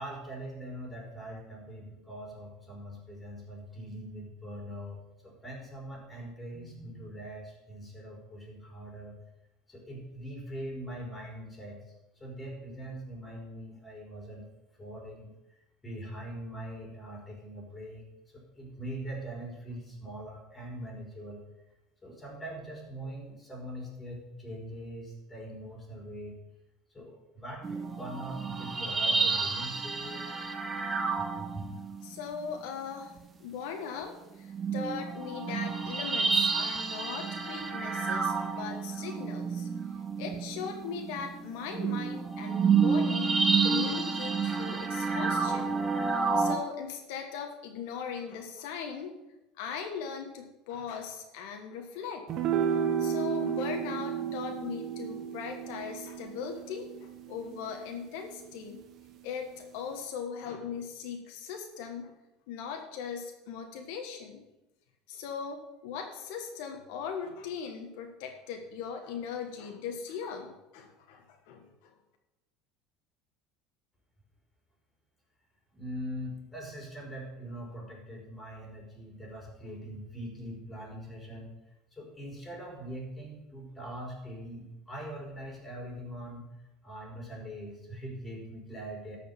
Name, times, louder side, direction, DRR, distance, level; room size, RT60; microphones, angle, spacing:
voice 1, 0.0-9.2 9.7-14.5 14.8-21.4 22.0-26.4 26.9-30.2 31.1-31.7 75.7-81.5 81.9-86.5 86.8-89.2, right 1 dB, 10° left, -1 dB, 4.0 m, -42 dB
sound 1, 27.6-32.1 33.2-33.3 34.4-46.6, right 5 dB, 20° right, 1.0 m, -30 dB
voice 2, 32.0-33.1 33.4-39.7 40.2-43.3 43.6-45.8 46.3-49.1 49.6-52.3 52.6-52.7 53.0-58.8 59.2-62.1 62.5-64.4 65.1-71.9, left 6 dB, 75° left, 3 dB, 1.4 m, -39 dB
sound 2, 52.3-58.8, right 7 dB, 45° right, 1.0 m, -33 dB
13.0 x 5.1 x 7.0 m, 0.95 s
cardioid pair, 135°, 0 cm